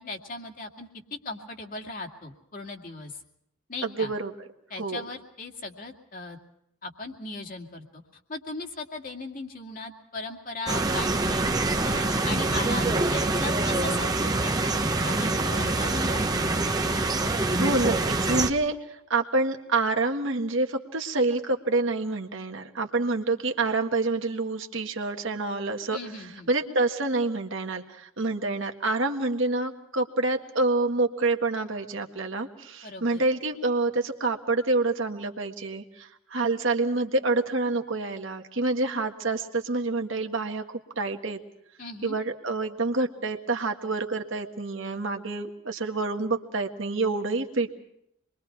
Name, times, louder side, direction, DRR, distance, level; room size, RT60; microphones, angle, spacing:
voice 1, 0.0-3.2 3.7-4.1 4.7-6.4 6.8-8.0 8.3-11.4 11.8-16.2 25.9-26.5 32.8-33.2 41.8-42.2, left 3 dB, 40° left, 3 dB, 2.4 m, -38 dB
voice 2, 3.8-4.3 4.8-5.0 17.6-26.0 26.5-40.6 41.0-41.4 42.0-47.7, right 3 dB, 60° right, 4 dB, 1.7 m, -27 dB
sound 1, 10.7-18.5, right 2 dB, 20° right, 1.2 m, -25 dB
27.0 x 22.5 x 4.6 m, 0.77 s
head